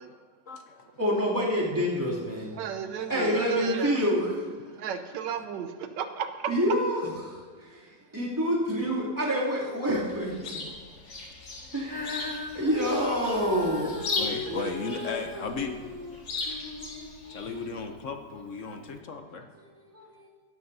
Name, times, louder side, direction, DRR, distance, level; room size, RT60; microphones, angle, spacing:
voice 1, 0.0-0.9 4.7-4.8 10.4-11.8 12.0-12.1 14.2-15.8 17.3-19.4, left 4 dB, 55° left, 6 dB, 1.0 m, -37 dB
voice 2, 1.0-2.6 3.0-4.3 6.5-7.8 8.1-10.6 11.7-14.0 17.2-17.3 19.9-20.3, equal, 10° right, -7 dB, 2.8 m, -28 dB
voice 3, 2.5-4.1 4.7-6.5 14.5-14.7, right 8 dB, 80° right, 8 dB, 1.4 m, -34 dB
Chirp tweet, 10.1-17.7, left 3 dB, 85° left, 2.7 m, -38 dB
Female singing, 11.8-18.2 18.9-19.0, left 2 dB, 30° left, 0.4 m, -38 dB
17.0 x 12.5 x 2.8 m, 1.5 s
omnidirectional pair, 1.9 m